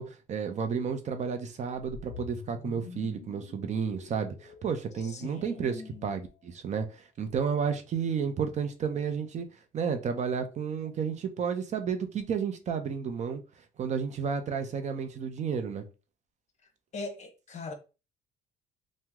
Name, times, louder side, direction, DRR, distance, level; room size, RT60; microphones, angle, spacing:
voice 1, 0.0-9.5 9.7-13.4 13.8-15.8, right 6 dB, 45° right, 0.6 m, -32 dB
sound 1, 1.8-6.1, left 6 dB, 70° left, 0.6 m, -47 dB
voice 2, 5.0-6.1 16.9-17.7, left 3 dB, 45° left, 0.9 m, -40 dB
2.9 x 2.1 x 3.5 m
cardioid pair, 110°, 17 cm